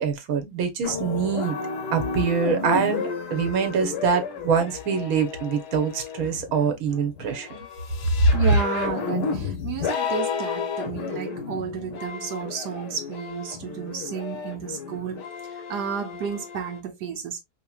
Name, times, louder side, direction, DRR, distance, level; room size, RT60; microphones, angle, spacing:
voice 1, 0.0-1.6 1.9-7.6 8.2-8.4, right 5 dB, 65° right, 1.3 m, -24 dB
sound 1, 0.8-16.8, left 5 dB, 85° left, 1.3 m, -32 dB
voice 2, 8.3-17.4, right 7 dB, 85° right, 1.3 m, -32 dB
4.7 x 2.9 x 2.3 m
omnidirectional pair, 1.8 m